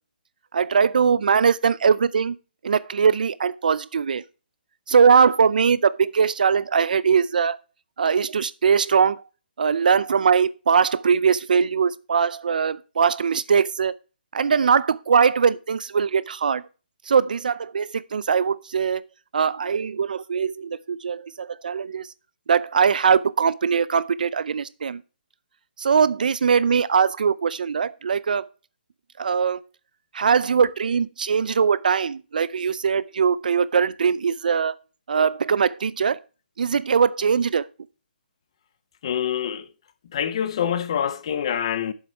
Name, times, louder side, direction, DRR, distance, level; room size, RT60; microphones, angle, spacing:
voice 1, 0.5-2.4 2.6-4.2 4.9-7.6 8.0-9.2 9.6-13.9 14.3-16.6 17.1-19.0 19.3-22.1 22.5-25.0 25.8-28.5 29.2-29.6 30.1-34.7 35.1-36.2 36.6-37.6, right 6 dB, 55° right, 0.5 m, -21 dB
voice 2, 39.0-39.6 40.1-41.9, left 9 dB, 30° left, 0.7 m, -25 dB
8.0 x 7.4 x 4.6 m
hypercardioid pair, 170°, 5 cm